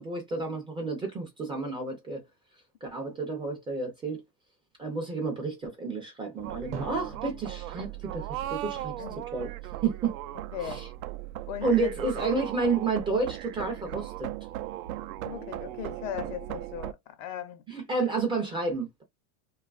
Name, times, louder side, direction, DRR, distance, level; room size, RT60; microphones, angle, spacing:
voice 1, 0.0-2.2 2.8-4.2 4.8-9.0 9.3-9.5 9.8-10.1 10.7-10.8 11.6-14.3 17.7-19.0, right 3 dB, 15° right, 0.4 m, -30 dB
sound 1, 6.4-16.9, right 14 dB, 85° right, 0.5 m, -37 dB
Drum, 6.7-9.6, right 5 dB, 55° right, 0.8 m, -45 dB
voice 2, 10.3-10.9 11.5-11.9 15.2-17.6, left 10 dB, 65° left, 0.7 m, -38 dB
2.6 x 2.3 x 2.3 m
supercardioid pair, 150°, 42 cm